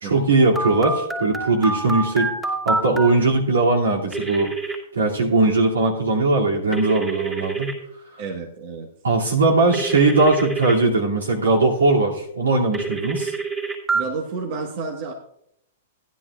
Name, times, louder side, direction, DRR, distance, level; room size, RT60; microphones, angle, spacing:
voice 1, 0.0-2.3 2.6-4.5 4.9-7.7 9.0-13.3, right 3 dB, 80° right, -1 dB, 2.5 m, -19 dB
Telephone, 0.6-3.1 4.1-4.8 6.7-7.7 9.7-10.7 12.7-14.0, right 3 dB, 15° right, 2.8 m, -26 dB
voice 2, 8.2-8.9 13.9-15.1, right 4 dB, 55° right, 2 dB, 1.4 m, -30 dB
15.0 x 10.5 x 2.4 m, 0.73 s
hypercardioid pair, 115°, 0 cm